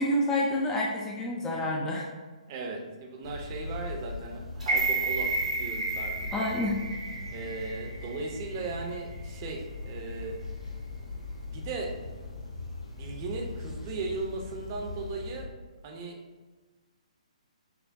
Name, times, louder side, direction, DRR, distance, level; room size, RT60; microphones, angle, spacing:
voice 1, 0.0-2.1 6.3-6.8, left 1 dB, 10° left, -2 dB, 0.4 m, -28 dB
voice 2, 2.5-5.3 5.6-6.6 7.3-10.4 11.5-11.9 12.9-15.5 15.8-16.2, right 3 dB, 30° right, 1 dB, 0.6 m, -37 dB
sound 1, 3.2-15.4, left 3 dB, 60° left, 0.8 m, -40 dB
sound 2, 4.6-8.7 9.1-9.2, right 3 dB, 80° right, 1.0 m, -31 dB
5.7 x 2.1 x 2.6 m, 1.3 s
figure-of-eight pair, 130°, 4 cm